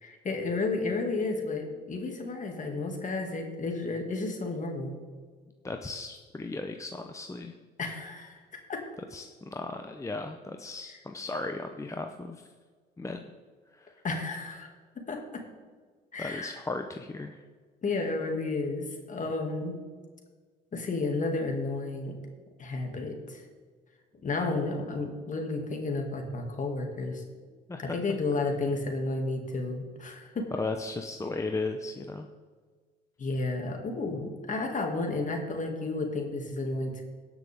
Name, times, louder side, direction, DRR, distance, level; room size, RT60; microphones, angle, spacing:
voice 1, 0.0-5.0 7.8-8.8 14.0-14.7 15.1-15.4 16.1-16.6 17.8-19.8 20.7-22.1 22.6-23.4 24.2-27.2 27.8-30.5 33.2-37.0, left 3 dB, 40° left, 3 dB, 2.3 m, -32 dB
voice 2, 5.6-7.5 9.1-12.4 13.0-13.3 13.7-14.0 16.2-17.4 27.7-27.9 30.5-32.3, left 3 dB, 15° left, 5 dB, 0.7 m, -36 dB
18.5 x 6.1 x 3.6 m, 1.5 s
supercardioid pair, 70°, 20 cm